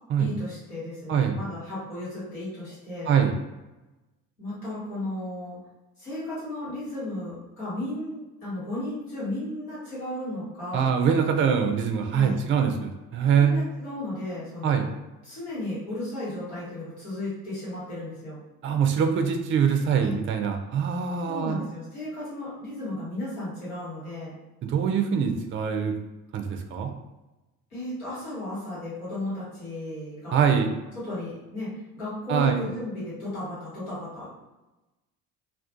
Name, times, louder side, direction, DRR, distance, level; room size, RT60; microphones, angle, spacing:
voice 1, 0.2-3.1 4.4-5.6 6.0-10.9 12.1-12.4 13.3-14.9 15.2-18.4 20.0-20.2 21.2-24.3 27.7-30.6 30.9-34.4, left 1 dB, 85° left, -11 dB, 1.3 m, -34 dB
voice 2, 10.7-13.6 14.6-14.9 18.6-21.6 24.6-25.9 26.3-26.9 30.3-30.7 32.3-32.6, right 7 dB, 30° right, 5 dB, 0.4 m, -23 dB
2.3 x 2.2 x 2.5 m, 1.1 s
hypercardioid pair, 55°, 42 cm